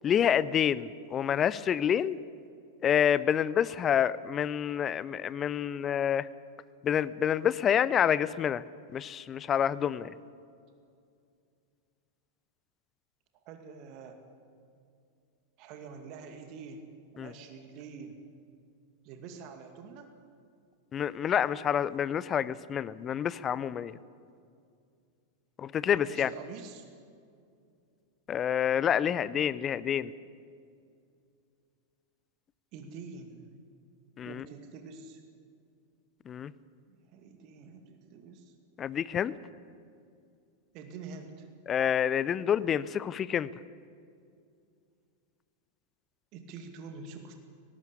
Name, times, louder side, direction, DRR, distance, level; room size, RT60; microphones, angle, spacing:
voice 1, 0.0-2.2 2.8-6.3 6.8-8.6 8.9-10.1 17.2-17.3 20.9-23.9 25.6-26.3 28.3-30.1 34.2-34.4 36.3-36.5 38.8-39.3 41.7-43.5, left 9 dB, 25° left, 18 dB, 0.6 m, -28 dB
voice 2, 13.5-14.2 15.6-16.9 17.1-18.2 19.0-20.1 25.9-26.9 32.7-33.5 34.3-35.2 36.9-38.5 40.7-41.5 46.3-47.3, right 5 dB, 40° right, 6 dB, 2.2 m, -46 dB
18.5 x 18.5 x 8.6 m, 2.3 s
figure-of-eight pair, 90°, 0 cm